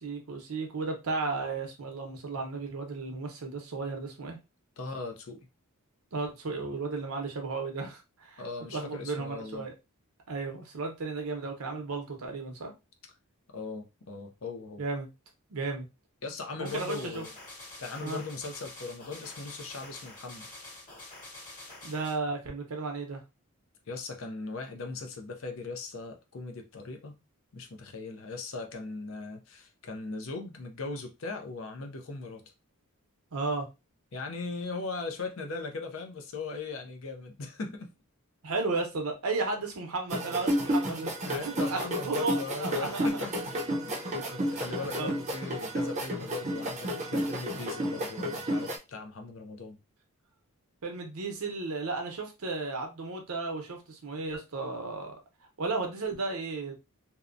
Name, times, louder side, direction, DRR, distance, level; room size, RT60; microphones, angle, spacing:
voice 1, 0.0-4.4 6.1-8.4 8.7-9.7 10.3-12.7 14.8-15.1 15.5-15.9 16.6-17.2 18.0-18.2 21.8-23.2 33.3-33.7 38.4-41.1 41.6-43.3 44.0-44.2 45.0-45.1 50.8-55.1 55.6-56.8, right 3 dB, 75° right, 0.7 m, -34 dB
voice 2, 4.8-5.4 8.4-9.7 13.5-14.8 16.2-17.3 17.8-20.5 23.9-27.2 27.5-32.4 34.1-37.9 41.2-43.5 43.9-44.0 44.3-49.8, left 3 dB, 65° left, 0.5 m, -39 dB
sound 1, 16.6-22.2, left 2 dB, 40° left, 1.3 m, -47 dB
sound 2, 40.1-48.8, equal, 30° right, 0.5 m, -31 dB
2.7 x 2.1 x 2.4 m
head